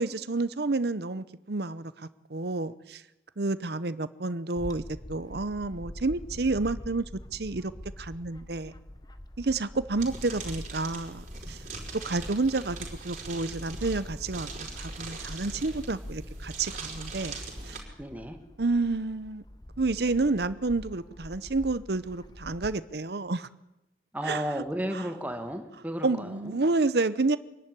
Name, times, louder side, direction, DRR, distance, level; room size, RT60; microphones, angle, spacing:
voice 1, 0.0-3.0 3.4-4.8 5.1-7.0 7.3-7.7 8.0-8.7 9.4-11.6 12.0-12.8 13.0-17.4 17.6-17.8 18.6-19.4 19.8-23.5 24.2-24.4 26.0-27.4, right 3 dB, 60° right, 14 dB, 0.8 m, -29 dB
Bird / Wind, 4.6-22.8, left 1 dB, 20° left, 0.9 m, -45 dB
sound 1, 10.0-17.8, right 4 dB, 45° right, 4.6 m, -41 dB
voice 2, 18.0-18.4 24.1-26.6, equal, 10° right, 6 dB, 1.7 m, -33 dB
24.5 x 11.5 x 9.9 m, 0.95 s
head